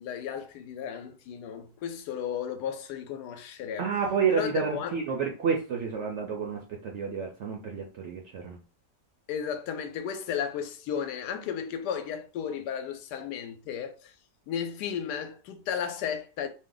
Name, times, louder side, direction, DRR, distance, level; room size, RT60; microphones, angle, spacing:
voice 1, 0.0-3.9 4.3-5.0 9.3-14.1 14.5-16.5, left 8 dB, 85° left, 1.2 m, -34 dB
voice 2, 3.8-8.6, right 6 dB, 70° right, 0.6 m, -30 dB
2.8 x 2.1 x 3.7 m
omnidirectional pair, 1.7 m